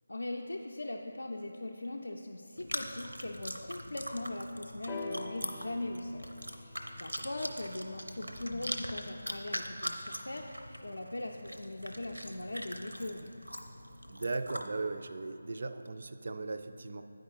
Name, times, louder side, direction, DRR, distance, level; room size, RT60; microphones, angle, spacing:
voice 1, 0.1-13.3, left 1 dB, 75° left, 1 dB, 0.4 m, -40 dB
Chewing mastication, 2.6-14.7, equal, 90° right, 0.7 m, -42 dB
sound 1, 4.9-8.7 9.6-9.7, left 3 dB, 10° left, 0.5 m, -46 dB
voice 2, 14.1-17.0, right 3 dB, 50° right, 9 dB, 0.4 m, -37 dB
9.3 x 4.9 x 4.0 m, 2.7 s
figure-of-eight pair, 160°, 0 cm